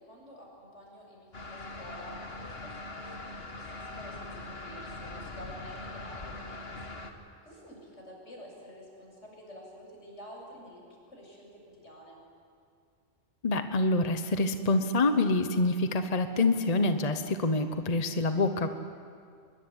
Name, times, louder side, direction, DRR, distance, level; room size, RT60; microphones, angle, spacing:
voice 1, 0.0-7.0 7.4-10.8 11.1-12.2, equal, 85° left, -1 dB, 7.7 m, -49 dB
sound 1, 1.3-7.1, left 2 dB, 60° left, 2.1 m, -42 dB
voice 2, 13.4-18.7, left 2 dB, 35° left, 8 dB, 1.1 m, -26 dB
24.5 x 22.0 x 10.0 m, 2.2 s
omnidirectional pair, 1.2 m